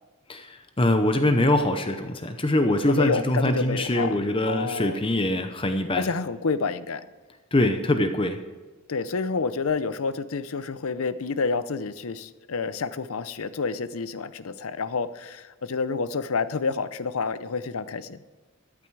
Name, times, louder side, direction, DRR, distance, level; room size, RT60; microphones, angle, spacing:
voice 1, 0.3-6.1 7.5-8.4, left 1 dB, 25° left, 7 dB, 0.7 m, -23 dB
voice 2, 2.8-4.2 4.5-5.0 6.0-7.1 8.9-18.2, left 4 dB, 70° left, 14 dB, 0.6 m, -29 dB
14.0 x 9.1 x 4.7 m, 1.3 s
head